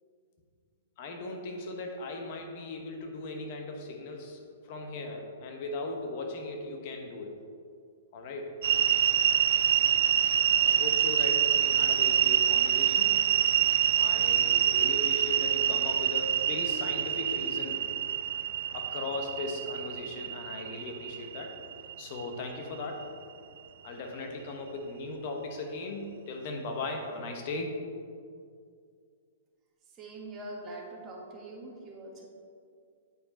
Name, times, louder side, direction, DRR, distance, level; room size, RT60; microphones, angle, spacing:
voice 1, 1.0-7.3 8.1-8.5 10.6-13.1 14.0-17.8 18.7-21.5 22.0-23.1 23.8-27.8, left 2 dB, 50° left, 2 dB, 1.2 m, -38 dB
sound 1, 8.6-22.7, right 10 dB, 60° right, 0.3 m, -26 dB
voice 2, 30.0-32.3, right 1 dB, 25° right, -2 dB, 1.5 m, -43 dB
8.4 x 4.5 x 4.3 m, 2.2 s
hypercardioid pair, 115°, 0 cm